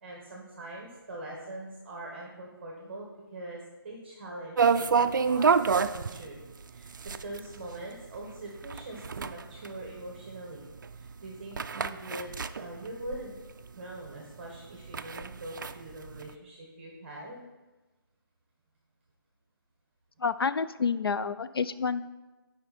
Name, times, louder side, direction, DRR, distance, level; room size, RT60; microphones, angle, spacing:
voice 1, 0.0-5.5 5.9-6.4 6.7-13.3 13.7-17.5, right 1 dB, 30° right, -1 dB, 1.4 m, -43 dB
sound 1, 4.6-13.7 14.1-14.2 14.5-16.3, right 5 dB, 55° right, 0.4 m, -28 dB
voice 2, 20.2-22.1, left 5 dB, 75° left, 13 dB, 0.5 m, -29 dB
11.0 x 5.2 x 4.3 m, 1.2 s
hypercardioid pair, 165°, 13 cm